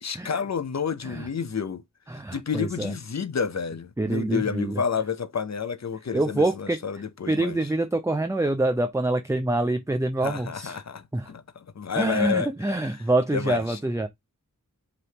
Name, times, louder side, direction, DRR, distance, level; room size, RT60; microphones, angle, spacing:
voice 1, 0.0-1.8 2.3-7.6 10.2-12.5 13.3-13.8, left 6 dB, 55° left, 0.6 m, -30 dB
voice 2, 2.1-2.9 4.0-4.8 6.1-6.8 7.3-10.8 11.1-11.3 11.9-14.1, right 2 dB, 10° right, 0.5 m, -26 dB
5.1 x 3.2 x 2.9 m
wide cardioid pair, 50°, 34 cm